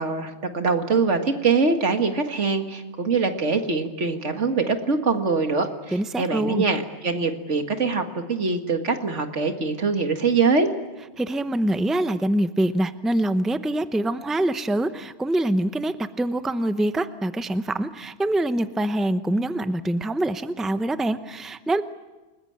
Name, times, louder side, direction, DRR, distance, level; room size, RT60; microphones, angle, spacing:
voice 1, 0.0-10.7, right 4 dB, 90° right, 6 dB, 2.2 m, -23 dB
voice 2, 5.9-6.7 11.2-21.8, right 1 dB, ahead, 11 dB, 0.7 m, -25 dB
29.0 x 20.5 x 8.8 m, 1.2 s
omnidirectional pair, 1.2 m